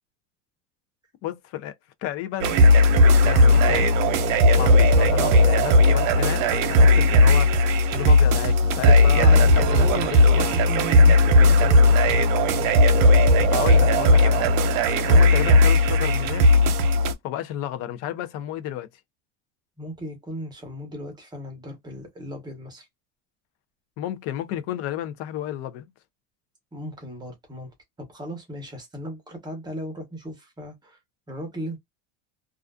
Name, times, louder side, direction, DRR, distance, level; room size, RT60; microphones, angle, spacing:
voice 1, 1.2-1.7 2.0-3.9 4.5-7.5 7.9-10.5 13.5-14.5 15.1-16.5 17.2-18.9 24.0-25.9, left 12 dB, 40° left, 0.4 m, -32 dB
sound 1, 2.4-17.1, left 1 dB, 85° right, 0.7 m, -17 dB
voice 2, 9.7-12.2 19.8-22.9 26.7-27.7 28.1-31.0 31.3-31.8, equal, 10° right, 0.8 m, -36 dB
2.4 x 2.3 x 2.2 m
cardioid pair, 165°, 38 cm